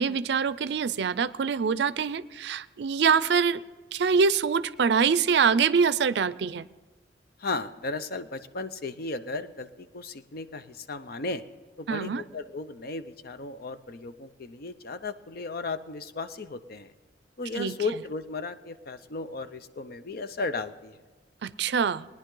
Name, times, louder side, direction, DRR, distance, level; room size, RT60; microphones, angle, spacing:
voice 1, 0.0-3.6 3.9-6.7 11.9-12.2 17.6-17.7 21.4-22.1, right 6 dB, 70° right, 16 dB, 0.4 m, -24 dB
voice 2, 7.4-11.4 11.8-16.9 17.4-21.0, left 3 dB, 60° left, 11 dB, 0.6 m, -35 dB
19.0 x 10.5 x 3.8 m, 1.3 s
head